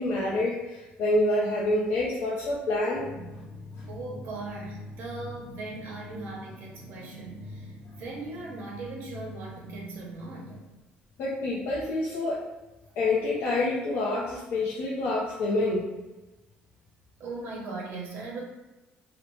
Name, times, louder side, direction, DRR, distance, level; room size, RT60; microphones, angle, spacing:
voice 1, 0.0-3.1 11.2-12.4 13.0-15.9, left 2 dB, 65° left, -5 dB, 0.5 m, -27 dB
sound 1, 2.9-10.5, left 1 dB, ahead, 0.7 m, -44 dB
voice 2, 3.9-10.6 17.2-18.4, right 3 dB, 60° right, -2 dB, 0.7 m, -39 dB
2.6 x 2.0 x 3.0 m, 1.1 s
cardioid pair, 120°, 4 cm